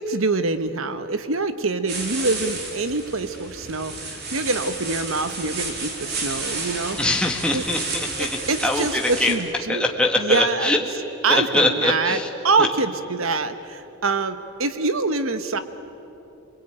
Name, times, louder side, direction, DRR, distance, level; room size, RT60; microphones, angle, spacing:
voice 1, 0.0-7.0 7.5-7.6 8.2-10.7 11.2-12.2 12.4-15.6, right 3 dB, 80° right, 10 dB, 1.3 m, -25 dB
sound 1, 1.9-9.3, right 3 dB, 50° right, 3.7 m, -32 dB
voice 2, 7.0-9.3 9.7-10.8 11.3-12.3 12.6-12.7, left 2 dB, 5° left, 0 dB, 1.6 m, -22 dB
28.0 x 22.0 x 9.2 m, 2.9 s
head